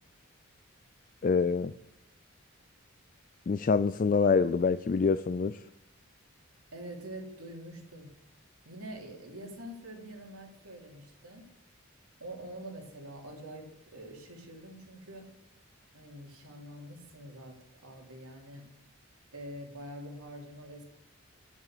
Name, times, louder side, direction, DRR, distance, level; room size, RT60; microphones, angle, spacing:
voice 1, 1.2-1.7 3.5-5.6, left 5 dB, 40° left, 13 dB, 0.3 m, -26 dB
voice 2, 6.7-8.1 8.6-11.5 12.2-15.3 15.9-18.6 19.3-20.8, right 1 dB, 90° right, 1 dB, 3.3 m, -45 dB
11.0 x 7.3 x 6.8 m, 0.77 s
head